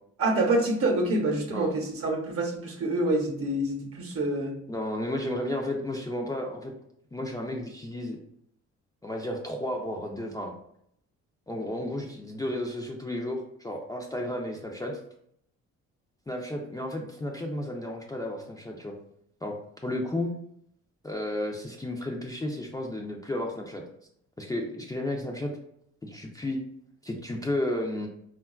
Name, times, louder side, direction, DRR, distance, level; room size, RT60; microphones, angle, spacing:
voice 1, 0.2-4.6, right 2 dB, 50° right, 3 dB, 0.8 m, -26 dB
voice 2, 4.7-6.7 7.1-8.2 9.0-10.5 11.5-15.0 16.3-18.9 19.4-19.5 19.8-20.3 21.0-23.8 24.4-25.5 26.0-26.6 27.0-28.1, left 1 dB, 10° left, 0 dB, 0.4 m, -32 dB
3.5 x 2.3 x 2.3 m, 0.70 s
cardioid pair, 90°, 30 cm